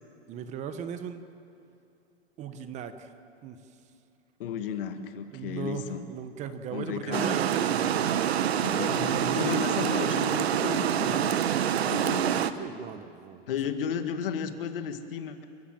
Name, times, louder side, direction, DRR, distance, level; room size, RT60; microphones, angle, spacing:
voice 1, 0.3-1.2 2.4-3.1 3.4-3.8 5.3-9.2 12.6-13.6, right 7 dB, 25° right, 10 dB, 1.0 m, -38 dB
voice 2, 4.4-6.1 6.7-7.4 8.6-11.5 11.8-12.5 13.5-15.5, left 8 dB, 60° left, 8 dB, 1.9 m, -34 dB
Water, 7.1-12.5, right 9 dB, 80° right, 1.1 m, -26 dB
30.0 x 14.5 x 7.7 m, 2.6 s
hypercardioid pair, 150°, 31 cm